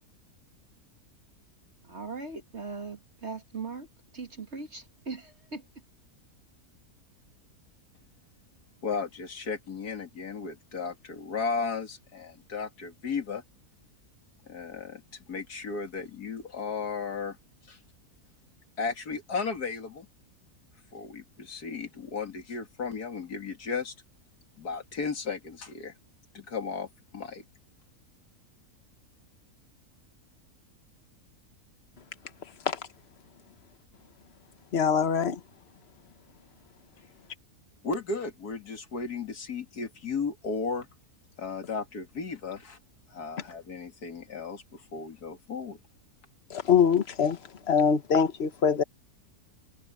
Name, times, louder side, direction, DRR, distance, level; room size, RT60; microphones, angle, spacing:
voice 1, 1.8-3.9 4.1-5.6, right 4 dB, 45° right, 2.3 m, -39 dB
voice 2, 8.8-13.4 14.5-17.4 17.7-17.8 18.8-20.1 20.9-23.9 24.6-25.9 26.3-27.4 37.8-40.9 41.4-42.8 43.1-45.8, left 4 dB, 90° left, 2.8 m, -35 dB
voice 3, 34.7-35.4 46.5-48.8, left 7 dB, 45° left, 1.5 m, -24 dB
omnidirectional pair, 1.6 m